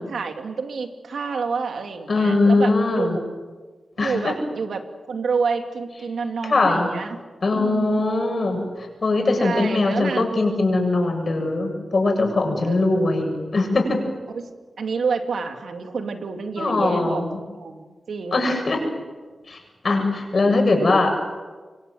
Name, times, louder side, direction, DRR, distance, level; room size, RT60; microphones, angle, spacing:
voice 1, 0.0-3.2 4.0-4.8 5.1-7.2 7.5-8.0 9.4-10.3 12.6-13.1 14.3-14.5 14.8-17.2 17.5-18.5 20.7-20.9, right 5 dB, 90° right, 5 dB, 2.6 m, -28 dB
voice 2, 2.1-3.2 4.0-4.3 6.5-6.9 7.4-14.0 16.6-17.3 18.3-18.8 19.5-19.6 19.8-21.2, left 2 dB, 55° left, 3 dB, 7.7 m, -21 dB
26.5 x 24.0 x 8.0 m, 1.3 s
cardioid pair, 65°, 0 cm